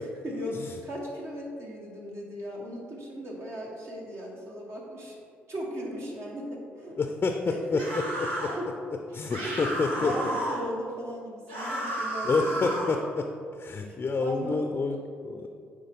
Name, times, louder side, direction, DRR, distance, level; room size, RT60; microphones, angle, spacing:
voice 1, 0.2-5.2 5.5-7.0 7.7-8.7 9.1-9.7 10.0-12.8 13.8-14.6, equal, 50° right, -2 dB, 1.4 m, -37 dB
voice 2, 7.0-7.8 8.2-8.5 9.1-10.2 12.2-15.5, left 4 dB, 35° left, 5 dB, 0.5 m, -28 dB
sound 1, 7.8-8.6 9.3-10.6 11.5-13.0, right 1 dB, 85° right, 1.1 m, -32 dB
9.2 x 3.5 x 3.6 m, 2.3 s
hypercardioid pair, 50°, 6 cm